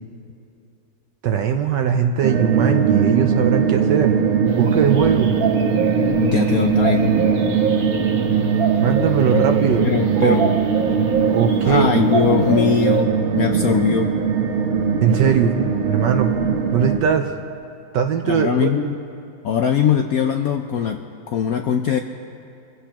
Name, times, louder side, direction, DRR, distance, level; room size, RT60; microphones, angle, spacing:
voice 1, 1.2-4.2 4.6-5.4 8.8-9.9 10.2-10.7 11.3-11.9 15.0-15.5 15.9-16.3 16.7-17.3 17.9-18.7, right 8 dB, 70° right, 5 dB, 1.3 m, -20 dB
sound 1, 2.2-17.0, right 6 dB, 85° right, 1.9 m, -20 dB
sound 2, 4.5-11.8 12.1-13.0, right 6 dB, 55° right, 1.5 m, -26 dB
voice 2, 6.2-7.1 9.3-9.5 9.8-10.5 11.6-14.1 18.2-19.0 19.4-22.0, left 8 dB, 70° left, 5 dB, 0.8 m, -21 dB
26.0 x 16.0 x 2.9 m, 2.6 s
omnidirectional pair, 2.1 m